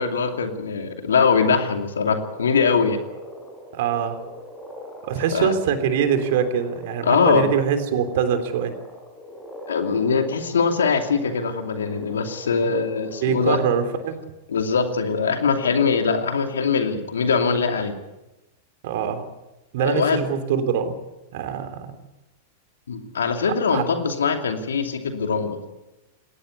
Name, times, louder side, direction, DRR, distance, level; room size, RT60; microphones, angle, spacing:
voice 1, 0.0-3.0 5.3-5.5 7.0-7.5 9.7-13.6 14.5-17.9 19.8-20.3 22.9-25.6, left 5 dB, 80° left, 6 dB, 2.6 m, -22 dB
sound 1, 1.9-14.2, equal, 10° left, 7.1 m, -41 dB
voice 2, 3.7-4.2 5.0-8.7 12.6-12.7 13.2-14.2 18.8-19.2 19.7-20.9 21.3-22.0 23.4-23.8, right 7 dB, 60° right, 8 dB, 3.4 m, -24 dB
21.0 x 18.0 x 8.3 m, 0.99 s
hypercardioid pair, 100°, 0 cm